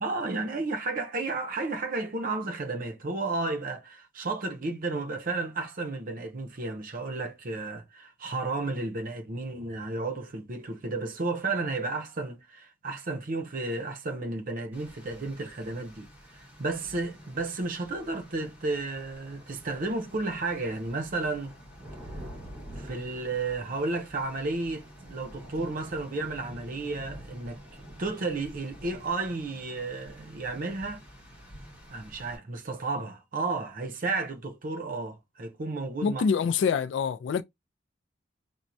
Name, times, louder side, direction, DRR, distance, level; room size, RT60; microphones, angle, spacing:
voice 1, 0.0-21.6 22.8-31.0 31.9-36.2, right 3 dB, 50° right, 0.6 m, -33 dB
Rain, 14.7-32.4, equal, 10° right, 2.6 m, -47 dB
voice 2, 36.0-37.4, left 6 dB, 70° left, 0.3 m, -25 dB
4.4 x 2.0 x 2.6 m
head